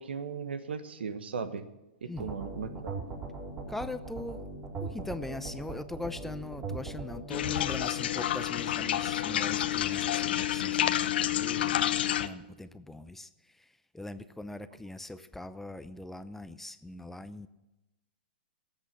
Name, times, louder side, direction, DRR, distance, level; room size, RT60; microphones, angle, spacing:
voice 1, 0.0-1.7 2.0-3.0, right 5 dB, 85° right, 11 dB, 1.4 m, -37 dB
sound 1, 2.2-7.2, right 3 dB, 30° right, 4.5 m, -39 dB
voice 2, 3.7-4.4 4.8-17.5, left 2 dB, 5° left, 11 dB, 0.6 m, -41 dB
sound 2, 7.3-12.3, left 12 dB, 70° left, 0.9 m, -29 dB
18.0 x 8.1 x 7.2 m, 0.99 s
hypercardioid pair, 125°, 6 cm